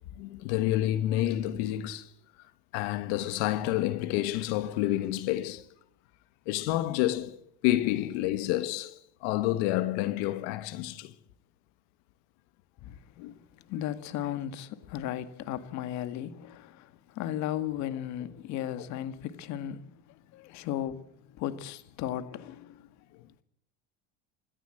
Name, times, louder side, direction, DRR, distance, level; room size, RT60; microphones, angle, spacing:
voice 1, 0.2-2.1 2.7-5.6 6.5-11.1 13.2-13.4 18.8-18.9, left 14 dB, 75° left, 1.5 m, -29 dB
voice 2, 13.7-22.9, left 11 dB, 55° left, 1.9 m, -36 dB
26.5 x 14.0 x 7.9 m
supercardioid pair, 130°, 33 cm